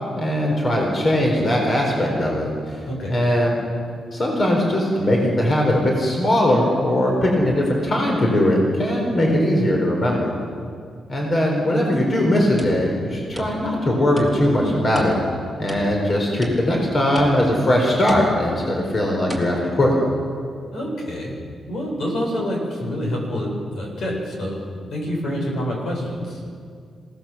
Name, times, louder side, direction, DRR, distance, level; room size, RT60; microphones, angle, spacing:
voice 1, 0.2-2.8 3.1-3.5 4.1-10.3 11.1-15.2 15.6-19.9, left 1 dB, 35° left, 0 dB, 4.5 m, -20 dB
voice 2, 2.9-3.2 12.2-12.3 20.7-21.4 21.7-24.6 24.9-26.4, equal, 65° left, -1 dB, 7.6 m, -27 dB
sound 1, 12.6-13.9 14.2-14.6 15.0-16.1 16.4-16.9 17.2-17.6 18.1-18.6 19.3-19.5, equal, 10° left, 3.8 m, -33 dB
26.5 x 17.5 x 7.6 m, 2.2 s
cardioid pair, 120°, 0 cm